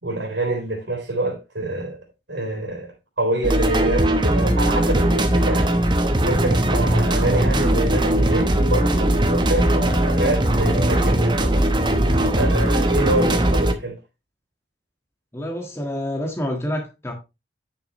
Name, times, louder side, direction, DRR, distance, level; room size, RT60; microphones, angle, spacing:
voice 1, 0.0-2.0 2.3-5.7 6.2-11.7 12.2-14.0, right 2 dB, 75° right, 3.4 m, -26 dB
sound 1, 3.4-13.7, right 1 dB, 25° right, 1.0 m, -19 dB
voice 2, 15.3-17.1, equal, 15° left, 1.6 m, -27 dB
10.0 x 6.4 x 3.0 m
head